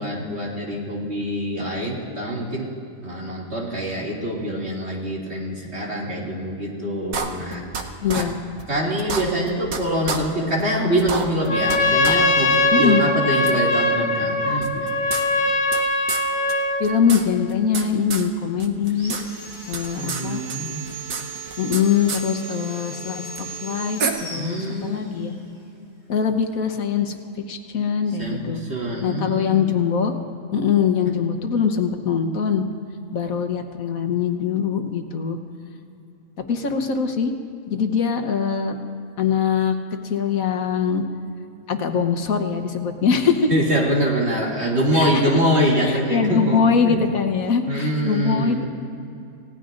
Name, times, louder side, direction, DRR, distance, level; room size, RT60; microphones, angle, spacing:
voice 1, 0.0-2.7 3.0-7.6 8.1-8.3 8.7-14.9 19.9-20.9 24.3-25.4 28.2-28.4 28.7-29.7 43.5-47.0 47.7-48.7, equal, 50° right, -4 dB, 2.8 m, -24 dB
sound 1, 7.1-7.8 8.1-8.2 8.6-8.7 9.0-9.8 10.1-10.2 10.6-10.7 11.0-11.8 12.0-12.2 12.5-12.6 13.5-13.6 14.6-15.8 16.1-16.2 16.5-16.6 16.8-17.8 18.1-18.3 18.6-19.2 19.5-20.2 20.5-21.8 22.1-22.2 23.4-23.5 24.0-24.1, right 5 dB, 80° right, 1.5 m, -28 dB
voice 2, 8.0-8.3 12.7-13.0 16.8-19.2 19.7-20.4 21.6-25.3 26.1-27.1 27.5-28.6 29.0-30.1 30.5-32.6 33.1-35.4 36.5-37.3 37.7-38.8 39.2-39.7 40.0-41.0 41.7-43.5 44.9-45.4 45.7-48.6, left 6 dB, 75° left, 6 dB, 1.4 m, -22 dB
Trumpet, 11.4-16.9, left 2 dB, 55° left, 1.9 m, -21 dB
Sawing, 18.9-25.3, right 3 dB, 30° right, 3.6 m, -37 dB
29.0 x 17.0 x 2.6 m, 2.7 s
omnidirectional pair, 1.5 m